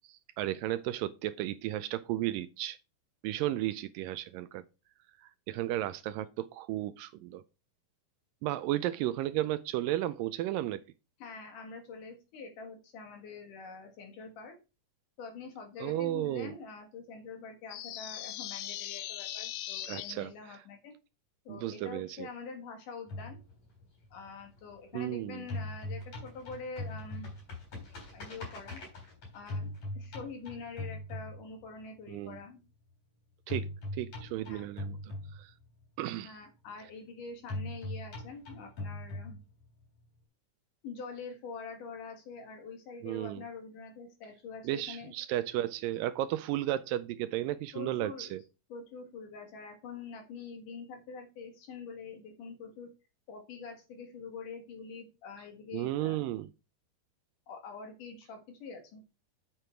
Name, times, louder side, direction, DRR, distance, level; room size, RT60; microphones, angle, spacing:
voice 1, 0.1-2.8 3.2-4.6 5.2-7.4 8.4-10.8 15.8-16.5 19.9-20.6 21.5-22.3 24.9-25.4 32.1-32.4 33.5-35.0 35.4-35.5 36.0-36.4 43.0-43.4 44.6-48.4 55.7-56.5, right 14 dB, 80° right, 2.1 m, -34 dB
voice 2, 11.2-14.6 15.2-20.9 21.5-23.4 24.1-27.3 28.1-28.8 29.3-32.6 34.4-34.7 36.2-39.4 40.8-45.1 47.7-48.4 48.7-52.9 53.3-56.3 57.5-59.0, left 4 dB, 65° left, 3.1 m, -45 dB
sound 1, 17.7-20.1, left 13 dB, 80° left, 1.8 m, -39 dB
sound 2, 23.1-25.1 25.4-31.8 33.5-35.8 37.5-39.8, left 1 dB, 45° left, 4.7 m, -40 dB
7.9 x 6.8 x 4.4 m
omnidirectional pair, 4.2 m